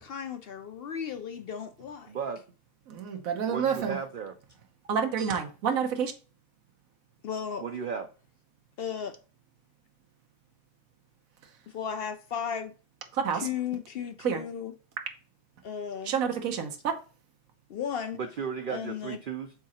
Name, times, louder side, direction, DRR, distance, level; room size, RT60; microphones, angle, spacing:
voice 1, 0.0-2.2 7.2-7.7 8.8-9.2 11.7-12.7 13.3-14.7 15.6-16.1 17.7-18.2 18.7-19.2, left 8 dB, 70° left, 0.5 m, -35 dB
voice 2, 2.1-2.4 3.5-4.3 7.6-8.1 18.1-19.5, right 6 dB, 90° right, 0.4 m, -35 dB
voice 3, 2.9-4.0 4.9-6.1 13.1-13.4 14.2-14.4 16.1-16.9, right 7 dB, 70° right, 1.3 m, -28 dB
6.2 x 3.8 x 4.2 m
omnidirectional pair, 1.5 m